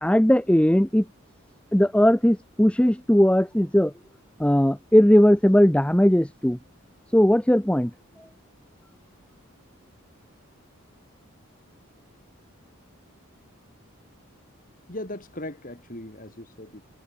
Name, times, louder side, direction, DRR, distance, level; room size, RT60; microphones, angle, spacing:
voice 1, 0.0-1.1 1.7-3.9 4.4-6.6 7.1-7.9, equal, 5° left, 0.6 m, -18 dB
voice 2, 14.9-16.8, left 1 dB, 40° left, 4.0 m, -38 dB
head